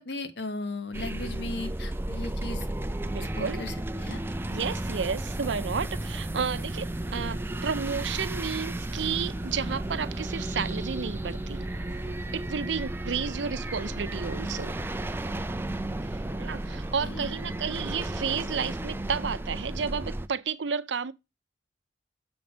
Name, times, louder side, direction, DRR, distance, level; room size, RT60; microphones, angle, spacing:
voice 1, 0.0-2.7 3.3-4.2 17.0-17.3, left 3 dB, 65° left, 1.3 m, -37 dB
sound 1, 0.9-20.3, right 1 dB, 15° right, 0.4 m, -33 dB
voice 2, 3.0-3.6 4.5-11.7 12.3-14.7 16.4-21.1, right 6 dB, 80° right, 0.6 m, -32 dB
sound 2, 6.0-17.1, left 2 dB, 85° left, 3.0 m, -53 dB
7.0 x 5.2 x 5.0 m
head